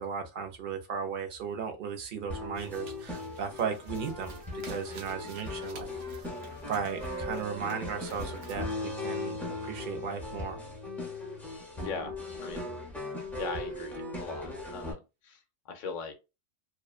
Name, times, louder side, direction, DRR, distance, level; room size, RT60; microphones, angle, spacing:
voice 1, 0.0-6.2 6.7-10.6, right 6 dB, 55° right, 0.6 m, -36 dB
sound 1, 2.3-14.9, left 2 dB, ahead, 0.6 m, -38 dB
sound 2, 2.5-8.6, right 5 dB, 80° right, 1.0 m, -52 dB
Trumpet, 3.5-10.8, right 3 dB, 35° right, 1.0 m, -51 dB
voice 2, 11.7-12.1 12.4-12.6 13.4-15.4 15.7-16.1, left 5 dB, 55° left, 0.6 m, -39 dB
2.6 x 2.2 x 2.3 m
omnidirectional pair, 1.2 m